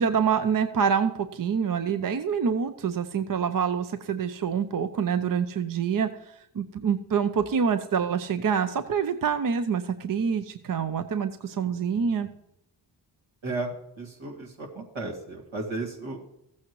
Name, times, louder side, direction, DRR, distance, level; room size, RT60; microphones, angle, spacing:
voice 1, 0.0-12.3, right 7 dB, 45° right, 10 dB, 0.7 m, -26 dB
voice 2, 11.9-12.4 13.4-16.2, right 2 dB, 70° right, -1 dB, 2.2 m, -35 dB
14.5 x 8.5 x 3.1 m, 0.82 s
cardioid pair, 45°, 48 cm